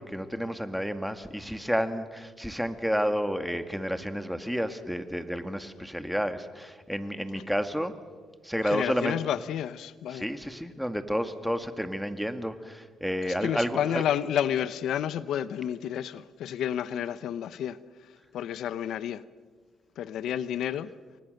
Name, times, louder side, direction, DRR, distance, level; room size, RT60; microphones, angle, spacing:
voice 1, 0.0-7.9 8.4-9.2 10.1-14.0, equal, ahead, 1.9 m, -30 dB
voice 2, 8.6-10.3 13.2-17.8 18.3-19.2 20.0-20.9, left 10 dB, 80° left, 0.8 m, -30 dB
29.5 x 24.0 x 6.6 m
cardioid pair, 90°, 0 cm